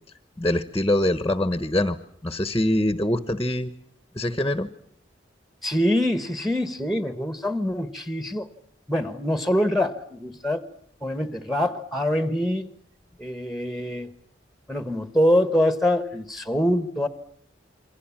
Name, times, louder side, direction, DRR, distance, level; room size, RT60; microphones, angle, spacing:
voice 1, 0.4-2.0 2.2-3.7 4.1-4.7, left 1 dB, 15° left, 13 dB, 1.1 m, -24 dB
voice 2, 5.6-8.5 8.9-10.6 11.0-12.7 13.2-14.1 14.7-17.1, left 1 dB, ahead, 12 dB, 1.4 m, -24 dB
28.5 x 23.5 x 7.3 m, 0.67 s
head